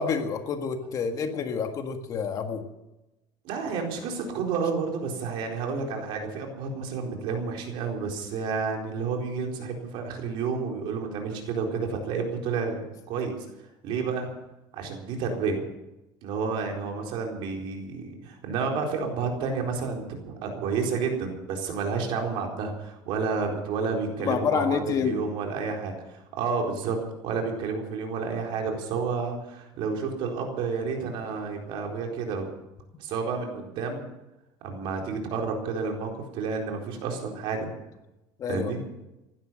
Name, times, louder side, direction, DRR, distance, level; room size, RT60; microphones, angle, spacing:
voice 1, 0.0-2.7 24.2-25.2 38.4-38.7, left 6 dB, 35° left, 6 dB, 1.7 m, -28 dB
voice 2, 3.4-13.3 13.8-14.3 14.7-15.6 16.2-32.5 33.0-34.1 34.6-37.7 38.5-38.8, right 5 dB, 60° right, 2 dB, 4.2 m, -30 dB
16.0 x 12.0 x 7.5 m, 0.97 s
cardioid pair, 150°, 10 cm